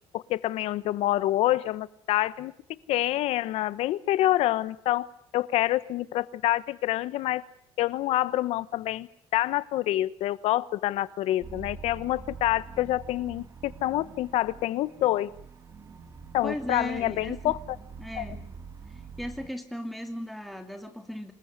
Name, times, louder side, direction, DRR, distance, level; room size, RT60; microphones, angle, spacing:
voice 1, 0.1-2.5 2.9-5.1 5.3-7.4 7.8-9.1 9.3-15.3 16.3-17.6 18.2-18.3, left 15 dB, 65° left, 17 dB, 1.1 m, -27 dB
sound 1, 11.4-19.5, right 5 dB, 30° right, 2.4 m, -45 dB
voice 2, 16.4-17.5 18.0-18.5 19.2-21.3, equal, ahead, 5 dB, 2.9 m, -36 dB
27.0 x 21.0 x 9.6 m, 0.66 s
cardioid pair, 180°, 11 cm